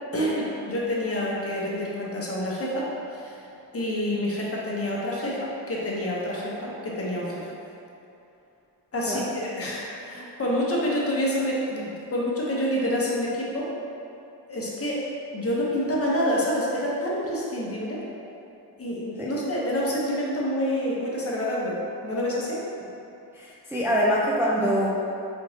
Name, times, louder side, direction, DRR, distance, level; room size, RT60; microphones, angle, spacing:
voice 1, 0.1-3.4 3.7-7.5 8.9-13.7 14.5-15.0 15.3-18.0 18.8-22.6, equal, 35° left, -5 dB, 0.9 m, -27 dB
voice 2, 23.3-24.9, equal, 5° right, -7 dB, 0.4 m, -24 dB
4.3 x 3.0 x 2.7 m, 2.7 s
cardioid pair, 70°, 43 cm